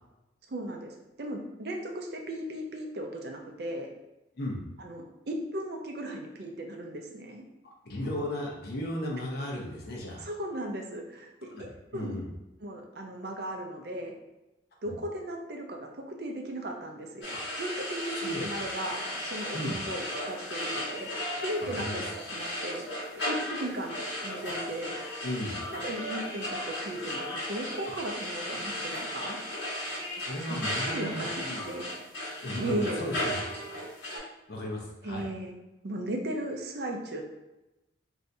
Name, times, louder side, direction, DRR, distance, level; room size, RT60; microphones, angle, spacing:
voice 1, 0.5-3.9 4.8-7.4 10.2-12.1 12.6-14.1 14.8-22.9 23.3-25.0 25.7-29.4 30.2-30.6 30.9-31.9 32.6-33.1 35.0-35.5 35.8-37.2, right 1 dB, 55° right, 2 dB, 0.5 m, -36 dB
voice 2, 7.8-10.2 11.4-12.3 14.9-15.0 17.3-17.4 18.2-18.5 19.5-19.8 21.6-22.0 25.2-25.6 27.8-27.9 30.2-31.6 32.4-33.4 34.5-35.3, left 1 dB, 55° left, -2 dB, 0.7 m, -35 dB
sound 1, 17.2-34.2, left 1 dB, 70° left, 1.1 m, -35 dB
3.3 x 2.6 x 2.6 m, 0.98 s
head